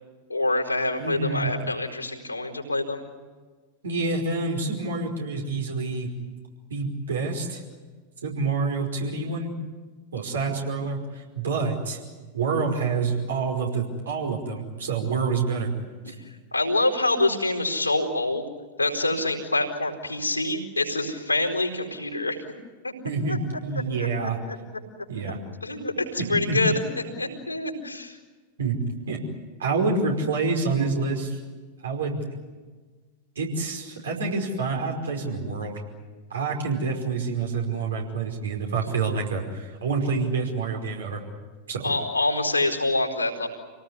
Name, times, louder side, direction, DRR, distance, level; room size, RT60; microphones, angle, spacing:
voice 1, 0.3-3.0 16.5-18.5 18.8-22.4 22.8-22.9 23.3-23.4 24.0-24.6 25.6-26.8 27.2-28.2 41.8-43.5, left 2 dB, 85° left, 2 dB, 4.5 m, -26 dB
voice 2, 1.0-1.5 3.8-6.1 6.7-7.6 8.2-9.5 10.1-12.0 12.3-15.7 16.0-16.2 23.0-24.4 25.1-25.4 26.2-26.6 28.6-28.8 29.1-29.2 29.6-31.4 31.8-32.2 33.4-35.8 36.3-41.2 41.7-41.9, right 4 dB, 65° right, 1 dB, 5.2 m, -27 dB
27.5 x 18.5 x 9.7 m, 1.4 s
figure-of-eight pair, 90°, 0 cm